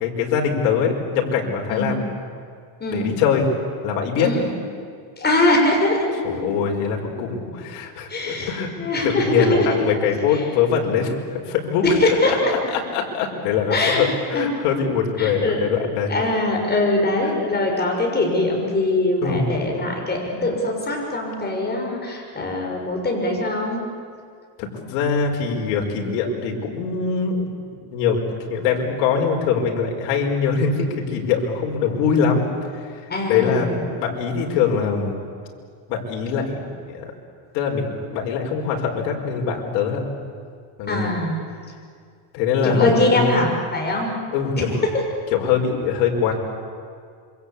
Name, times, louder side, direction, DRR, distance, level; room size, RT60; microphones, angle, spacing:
voice 1, 0.0-2.1 2.9-3.5 3.8-4.3 6.2-16.1 17.2-17.3 19.2-19.5 24.6-27.5 27.9-28.2 28.5-32.5 32.7-33.0 33.3-35.2 35.9-37.1 37.5-40.0 40.8-41.1 42.3-43.4 44.3-44.8 45.3-46.3, left 6 dB, 80° left, 2 dB, 5.1 m, -23 dB
voice 2, 2.8-3.1 4.2-4.5 5.2-6.6 8.1-9.7 10.2-10.4 12.0-12.5 13.7-14.0 14.3-14.5 15.2-15.6 16.1-23.8 33.1-33.8 40.9-41.4 42.6-44.1 44.6-44.7, left 2 dB, 20° left, 0 dB, 6.6 m, -22 dB
27.0 x 25.0 x 8.5 m, 2.1 s
cardioid pair, 130°, 49 cm